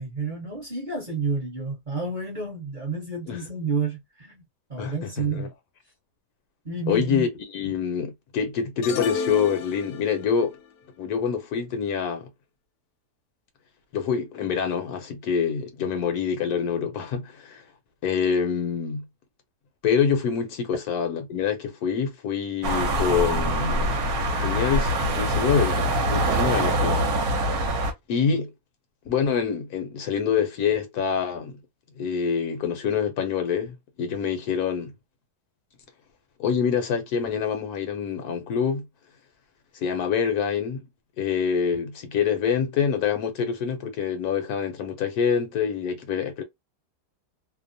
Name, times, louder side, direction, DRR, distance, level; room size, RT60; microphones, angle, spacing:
voice 1, 0.0-4.4 4.7-5.5 6.6-7.3, right 4 dB, 35° right, 0.9 m, -30 dB
voice 2, 4.8-5.5 6.9-10.6 11.0-12.3 13.9-17.6 18.0-19.0 19.8-24.0 24.4-27.4 28.1-28.5 29.1-31.6 32.0-34.9 36.4-38.9 39.7-40.8 41.2-46.4, left 7 dB, 70° left, 1.0 m, -26 dB
sound 1, 8.8-10.4, left 7 dB, 90° left, 1.2 m, -31 dB
sound 2, 22.6-27.9, right 1 dB, 70° right, 1.1 m, -24 dB
2.8 x 2.0 x 2.5 m
omnidirectional pair, 1.8 m